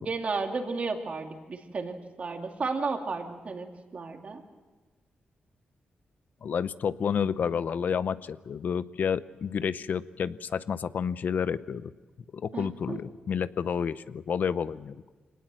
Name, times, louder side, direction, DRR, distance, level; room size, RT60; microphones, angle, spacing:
voice 1, 0.0-3.7 3.9-4.4 12.5-13.0, right 4 dB, 45° right, 3 dB, 2.6 m, -33 dB
voice 2, 6.4-11.9 12.3-15.0, left 7 dB, 60° left, 15 dB, 0.7 m, -30 dB
25.5 x 19.0 x 7.6 m, 1.3 s
cardioid pair, 100°, 3 cm